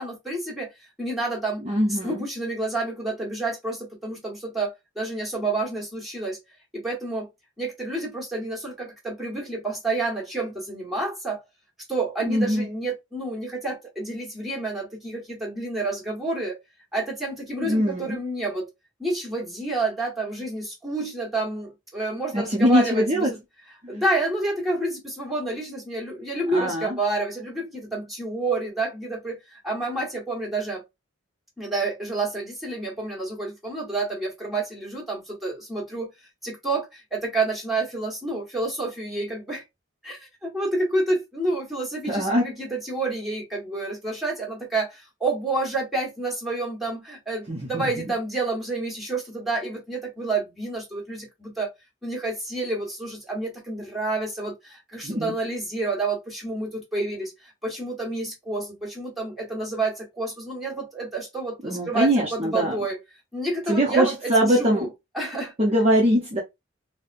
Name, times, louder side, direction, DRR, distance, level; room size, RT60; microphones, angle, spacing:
voice 1, 0.0-1.6 1.9-6.4 6.7-7.3 7.6-11.4 11.9-16.6 16.9-18.7 19.0-23.4 23.9-30.8 31.6-36.1 36.4-39.6 40.0-51.7 52.0-63.0 63.3-64.9 65.1-65.5, right 2 dB, ahead, 1.4 m, -29 dB
voice 2, 1.6-2.2 12.3-12.7 17.6-18.2 22.3-23.3 23.8-24.0 26.5-27.0 42.1-42.4 47.5-47.9 55.0-55.3 61.6-62.8 63.7-64.9 65.6-66.4, equal, 30° right, 0.7 m, -22 dB
4.0 x 2.1 x 2.6 m
head